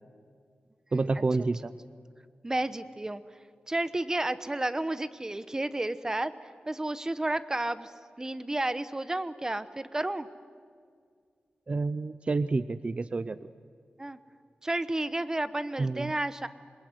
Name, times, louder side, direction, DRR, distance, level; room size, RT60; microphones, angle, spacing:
voice 1, 0.9-1.7 11.7-13.5 15.8-16.1, right 3 dB, 40° right, 14 dB, 0.6 m, -29 dB
voice 2, 2.4-3.2 3.7-6.3 6.7-7.9 8.2-10.3 14.0-14.2 14.6-16.5, right 1 dB, 20° right, 13 dB, 1.0 m, -31 dB
27.0 x 21.5 x 9.7 m, 2.1 s
wide cardioid pair, 110°, 3 cm